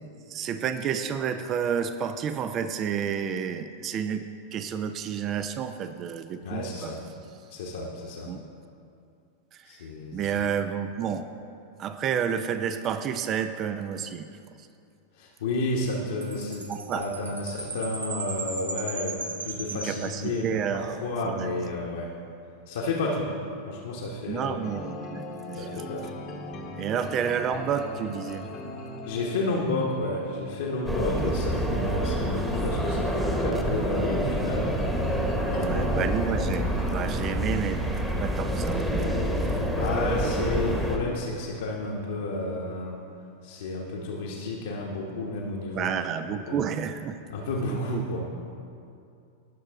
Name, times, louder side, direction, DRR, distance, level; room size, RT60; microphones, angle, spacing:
voice 1, 0.3-6.9 8.3-8.4 9.5-9.7 10.1-11.3 11.8-14.3 16.7-17.1 19.7-21.5 24.3-25.8 26.8-28.5 31.1-31.2 35.6-37.9 38.2-39.0 45.7-47.1 47.9-48.0, right 7 dB, 30° right, 10 dB, 0.5 m, -30 dB
voice 2, 6.4-7.0 7.5-8.3 9.6-10.5 15.1-22.1 22.7-23.3 23.7-24.7 25.6-26.2 29.1-34.7 35.5-36.3 39.8-43.0 43.4-46.0 46.4-46.6 47.3-48.2, left 2 dB, 60° left, -3 dB, 1.2 m, -31 dB
Chime, 16.2-20.7, right 3 dB, 75° right, 0.9 m, -37 dB
sound 1, 24.6-37.4, left 1 dB, 35° left, 1.0 m, -39 dB
sound 2, 30.9-41.0, equal, 5° right, 1.2 m, -27 dB
18.5 x 6.4 x 3.5 m, 2.5 s
figure-of-eight pair, 90°, 0 cm